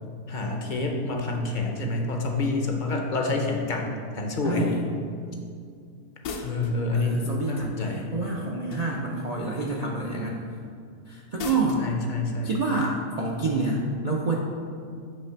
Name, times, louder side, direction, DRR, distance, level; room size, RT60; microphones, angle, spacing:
voice 1, 0.3-4.7 6.4-8.1 11.8-12.5, left 2 dB, 45° left, 1 dB, 0.6 m, -28 dB
voice 2, 4.4-4.8 6.9-10.4 11.1-11.9 12.4-14.4, right 3 dB, 60° right, -2 dB, 0.4 m, -28 dB
sound 1, 6.2-6.8 8.7-9.2 11.4-11.9, left 4 dB, 75° left, 1.1 m, -35 dB
8.4 x 3.3 x 5.7 m, 2.3 s
omnidirectional pair, 1.6 m